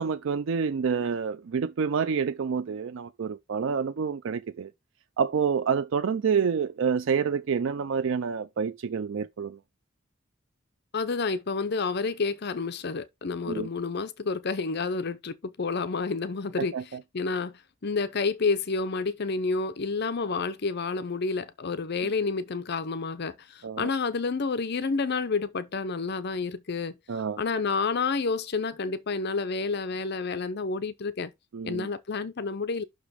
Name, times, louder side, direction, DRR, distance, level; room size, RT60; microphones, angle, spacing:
voice 1, 0.0-4.7 5.2-9.6 13.5-13.7 16.7-16.8 23.6-23.9 27.1-27.4 31.5-31.9, right 6 dB, 65° right, 0.4 m, -28 dB
voice 2, 10.9-16.7 17.1-27.0 27.4-31.3 31.6-32.8, left 4 dB, 55° left, 0.7 m, -29 dB
6.0 x 5.0 x 5.0 m
head